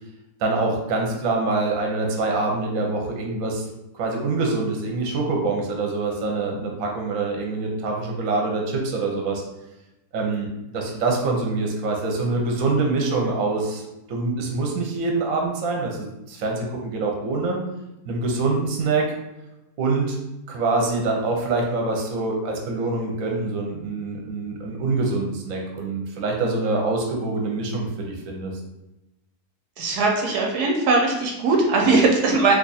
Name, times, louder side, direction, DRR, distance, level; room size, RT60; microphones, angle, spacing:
voice 1, 0.4-3.6 3.9-9.4 10.1-13.8 14.1-17.6 18.1-19.1 19.8-20.2 20.5-28.5, right 3 dB, 65° right, 1 dB, 1.1 m, -25 dB
voice 2, 29.8-32.5, right 3 dB, 85° right, 0 dB, 1.2 m, -20 dB
2.9 x 2.4 x 4.0 m, 0.93 s
omnidirectional pair, 1.7 m